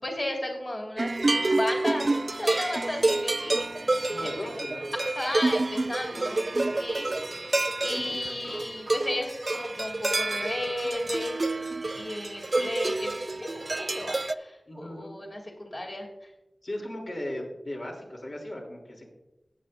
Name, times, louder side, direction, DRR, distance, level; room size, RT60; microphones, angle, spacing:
voice 1, 0.0-1.1 1.5-3.6 4.2-4.3 5.0-6.4 6.8-7.1 7.4-7.5 7.8-11.6 12.0-16.3, left 1 dB, 35° left, 0 dB, 2.8 m, -34 dB
sound 1, 1.0-14.3, right 2 dB, 45° right, 0.3 m, -28 dB
voice 2, 4.1-4.9 8.1-8.6 14.7-15.1 16.6-19.1, left 1 dB, 60° left, -1 dB, 3.1 m, -37 dB
15.5 x 9.1 x 2.6 m, 0.95 s
wide cardioid pair, 80°, 0 cm